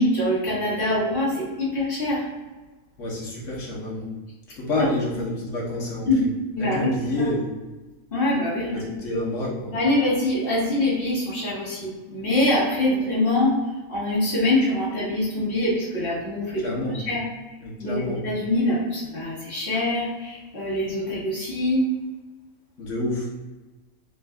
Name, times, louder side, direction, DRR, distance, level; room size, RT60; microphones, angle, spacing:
voice 1, 0.0-2.2 6.1-6.2 6.5-6.9 7.2-7.3 8.1-9.2 9.7-13.6 13.9-17.2 17.8-21.9, left 1 dB, 40° left, -9 dB, 1.5 m, -24 dB
voice 2, 3.0-4.1 4.6-6.1 6.6-7.6 8.7-9.7 16.6-17.0 17.6-18.2 22.8-23.3, left 1 dB, 55° left, -4 dB, 1.3 m, -28 dB
3.5 x 2.5 x 3.4 m, 1.2 s
omnidirectional pair, 1.6 m